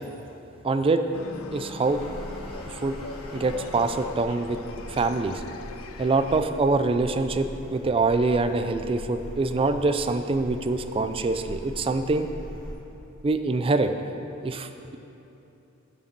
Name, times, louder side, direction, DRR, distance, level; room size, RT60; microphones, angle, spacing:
voice 1, 0.6-1.0 1.5-2.0 2.7-3.0 3.3-4.6 4.9-5.4 6.0-12.3 13.2-13.9 14.4-15.0, right 3 dB, 25° right, 9 dB, 0.3 m, -24 dB
sound 1, 1.1-6.4, left 4 dB, 90° left, 0.5 m, -41 dB
sound 2, 1.8-12.7, equal, 5° left, 1.6 m, -42 dB
8.0 x 5.1 x 6.8 m, 2.9 s
head